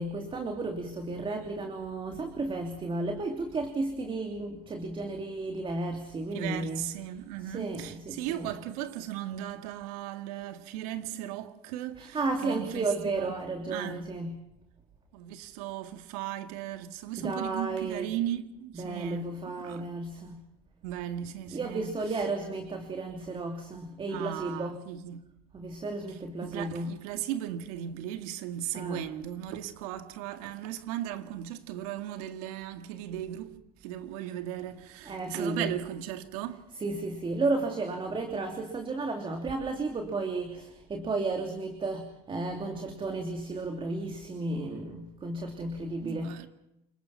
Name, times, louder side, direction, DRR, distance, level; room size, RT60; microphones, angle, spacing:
voice 1, 0.0-6.9 7.5-8.5 12.0-14.4 17.2-18.2 18.7-20.4 21.5-24.8 25.5-27.0 28.7-29.0 35.0-35.8 36.8-46.4, right 3 dB, 25° right, 3.0 m, -33 dB
voice 2, 6.3-13.4 13.7-14.0 15.1-19.3 19.6-19.9 20.8-22.0 24.1-25.2 26.4-33.5 33.8-36.6 46.0-46.5, right 12 dB, 80° right, 2.0 m, -37 dB
29.0 x 20.0 x 5.8 m
supercardioid pair, 105°, 19 cm